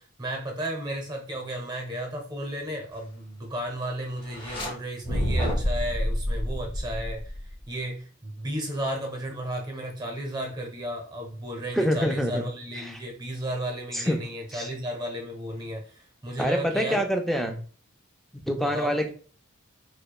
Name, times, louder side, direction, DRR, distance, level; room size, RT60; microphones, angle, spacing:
voice 1, 0.0-7.3 7.7-17.0 18.6-19.0, right 1 dB, 20° right, 2 dB, 0.8 m, -34 dB
sound 1, 4.3-4.7 5.0-7.6, equal, 25° left, 0.8 m, -28 dB
voice 2, 11.7-12.4 12.9-13.0 13.9-14.2 14.5-14.7 16.4-17.6 18.5-19.1, equal, ahead, 3 dB, 0.3 m, -26 dB
4.8 x 2.2 x 2.3 m, 0.41 s
head